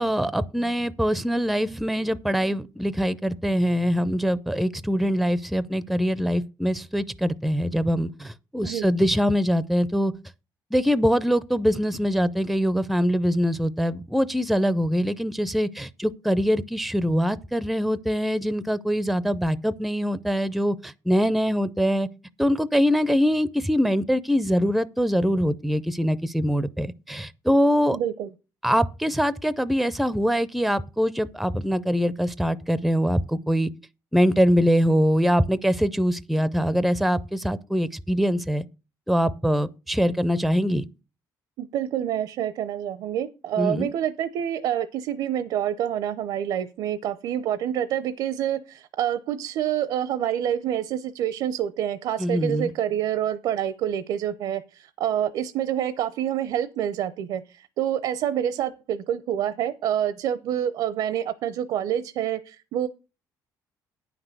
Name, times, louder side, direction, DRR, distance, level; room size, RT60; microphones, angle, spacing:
voice 1, 0.0-10.1 10.7-22.1 22.4-28.0 28.6-33.7 34.1-38.6 39.1-40.8 43.6-43.9 52.2-52.7, equal, ahead, 0.4 m, -23 dB
voice 2, 27.9-28.3 41.6-62.9, right 10 dB, 70° right, 0.6 m, -27 dB
9.6 x 6.0 x 6.5 m
cardioid pair, 155°, 8 cm